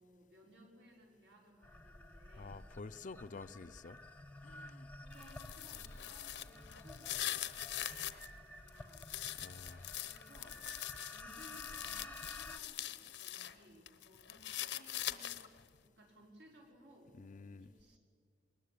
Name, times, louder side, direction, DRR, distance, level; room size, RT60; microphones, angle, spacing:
voice 1, 0.0-2.6 5.0-9.2 10.0-10.6 11.1-15.5 15.8-17.2 17.6-18.0, right 1 dB, 75° right, 5.3 m, -62 dB
sound 1, 1.6-12.6, left 1 dB, 10° left, 0.8 m, -52 dB
voice 2, 2.4-4.0 4.4-4.9 9.3-10.0 17.1-17.7, left 3 dB, 45° left, 0.5 m, -50 dB
sound 2, 5.1-8.3 8.7-13.5 13.9-15.6, left 12 dB, 80° left, 0.9 m, -43 dB
20.5 x 19.5 x 8.6 m
head